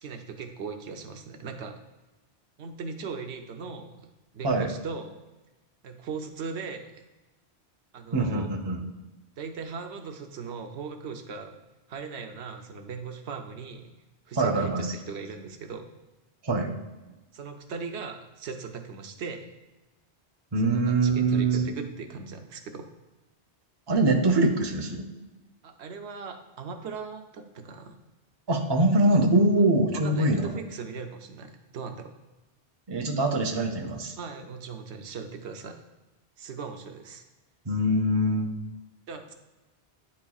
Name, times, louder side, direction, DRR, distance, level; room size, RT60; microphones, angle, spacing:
voice 1, 0.0-1.8 2.6-4.1 4.3-5.2 5.8-7.0 7.9-8.5 9.4-11.6 11.9-13.9 14.3-15.9 17.3-19.5 20.6-22.9 25.6-27.9 29.9-32.1 34.2-35.8 36.4-37.2 39.1-39.3, right 5 dB, 90° right, 5 dB, 1.0 m, -39 dB
voice 2, 8.1-8.8 14.4-14.9 16.4-16.7 20.5-21.7 23.9-25.1 28.5-30.5 32.9-34.1 37.7-38.5, right 2 dB, 30° right, 3 dB, 0.5 m, -23 dB
9.7 x 4.3 x 2.3 m, 1.1 s
omnidirectional pair, 1.1 m